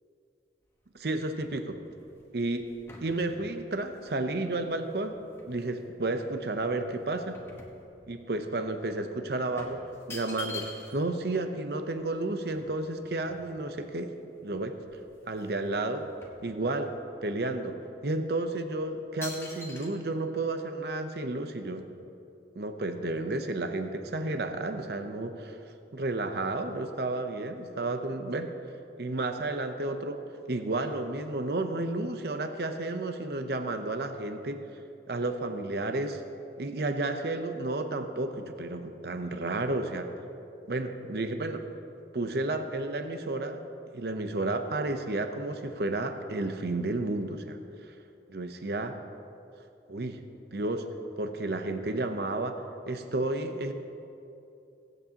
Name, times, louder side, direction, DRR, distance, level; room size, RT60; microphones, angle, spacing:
sound 1, 0.6-5.7 6.2-8.4 8.7-8.8 9.6-11.1 11.4-11.5 11.7-13.9 14.4-14.5 14.8-15.6 15.8-17.1 17.6-17.8 18.4-18.7 19.2-19.9, left 2 dB, 15° left, 1.2 m, -46 dB
voice 1, 0.9-1.8 2.3-2.6 3.0-5.2 5.4-7.4 8.1-9.8 10.1-14.1 14.4-14.8 15.3-16.1 16.4-16.9 17.2-17.8 18.0-21.8 22.6-25.6 25.9-28.5 29.0-30.2 30.5-34.6 35.1-36.2 36.6-40.1 40.7-41.6 42.1-43.6 43.9-47.6 48.3-49.0 49.9-50.2 50.5-50.9 51.2-52.6 52.9-53.7, right 2 dB, 65° right, 7 dB, 0.7 m, -32 dB
22.5 x 8.2 x 2.9 m, 2.7 s
head